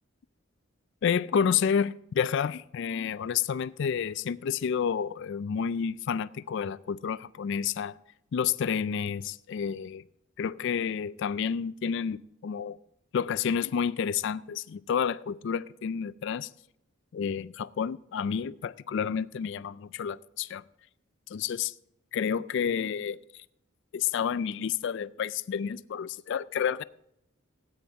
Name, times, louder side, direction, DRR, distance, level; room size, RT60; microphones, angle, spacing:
voice 1, 1.0-8.0 8.3-10.0 10.4-12.8 13.1-16.5 17.1-20.6 21.3-21.7 22.1-23.2 23.9-26.8, left 7 dB, 60° left, 0.3 m, -30 dB
17.0 x 9.3 x 3.5 m
head